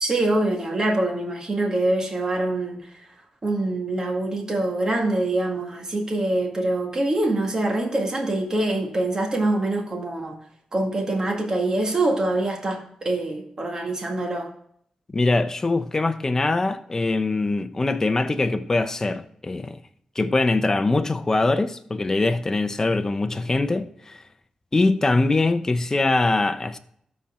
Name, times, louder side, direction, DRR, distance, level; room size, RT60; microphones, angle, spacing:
voice 1, 0.0-2.9 3.4-10.4 10.7-14.5, right 2 dB, 35° right, 1.8 m, -24 dB
voice 2, 15.1-19.8 20.2-24.2 24.7-26.8, left 2 dB, 25° left, 0.6 m, -22 dB
13.0 x 4.3 x 3.6 m
wide cardioid pair, 125°, 2 cm